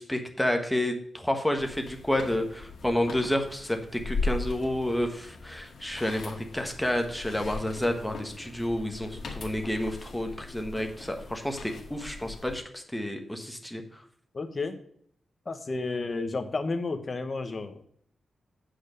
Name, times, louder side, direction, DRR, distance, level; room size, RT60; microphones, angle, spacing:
voice 1, 0.0-14.0, left 1 dB, 5° left, 4 dB, 1.4 m, -30 dB
sound 1, 1.6-12.6, left 3 dB, 70° left, 1.9 m, -39 dB
voice 2, 14.3-14.8 15.4-17.9, left 3 dB, 35° left, 7 dB, 1.2 m, -32 dB
8.8 x 5.0 x 6.6 m, 0.63 s
wide cardioid pair, 115°, 0 cm